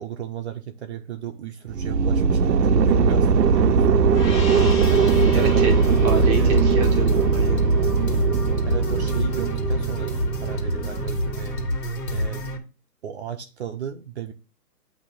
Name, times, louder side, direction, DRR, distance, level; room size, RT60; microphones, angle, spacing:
voice 1, 0.0-4.2 5.3-6.5 8.6-11.6 12.1-12.5 13.0-14.3, right 9 dB, 45° right, 0.7 m, -35 dB
sound 1, 1.7-11.6, right 5 dB, 85° right, 0.8 m, -20 dB
Gong, 4.1-9.1, left 4 dB, 30° left, 1.6 m, -39 dB
sound 2, 4.6-12.6, left 1 dB, 75° left, 1.9 m, -28 dB
voice 2, 5.3-5.8 6.0-7.6, right 3 dB, 15° right, 0.8 m, -28 dB
8.3 x 2.9 x 5.8 m
hypercardioid pair, 150°, 48 cm